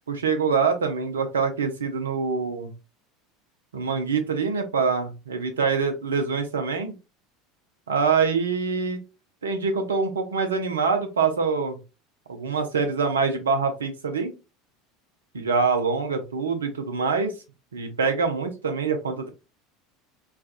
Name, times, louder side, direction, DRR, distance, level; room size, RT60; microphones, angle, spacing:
voice 1, 0.1-2.7 3.7-7.0 7.9-9.0 9.4-11.8 12.3-14.3 15.3-17.3 17.7-19.3, right 5 dB, 80° right, 7 dB, 0.6 m, -25 dB
3.4 x 2.3 x 2.5 m, 0.29 s
figure-of-eight pair, 75°, 0 cm